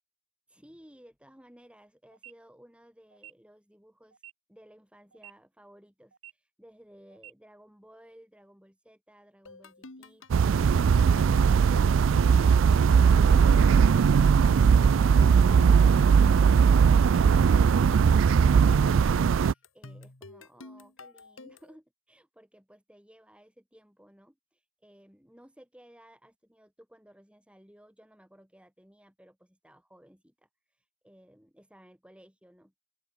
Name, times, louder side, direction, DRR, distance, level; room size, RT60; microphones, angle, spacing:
voice 1, 0.5-4.2 4.5-10.2 11.1-32.7, equal, 5° right, 4.9 m, -57 dB
sound 1, 2.1-2.3 3.1-3.3 4.1-4.3 5.1-5.3 6.1-6.3 7.1-7.3, right 11 dB, 85° right, 2.0 m, -49 dB
sound 2, 9.5-21.8, left 2 dB, 75° left, 2.0 m, -48 dB
sound 3, 10.3-19.5, right 6 dB, 70° right, 0.4 m, -20 dB
open air
head